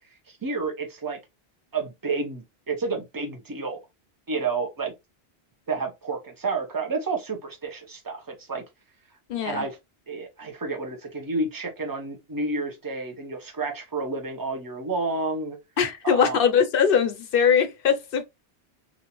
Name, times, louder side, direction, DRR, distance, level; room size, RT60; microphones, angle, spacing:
voice 1, 0.3-1.2 1.7-3.8 4.3-4.9 5.7-8.6 9.4-9.8 10.1-15.6 16.0-16.4, right 3 dB, 20° right, 0.7 m, -30 dB
voice 2, 9.3-9.7 15.8-18.2, left 7 dB, 65° left, 0.7 m, -21 dB
3.5 x 2.7 x 2.9 m
omnidirectional pair, 1.1 m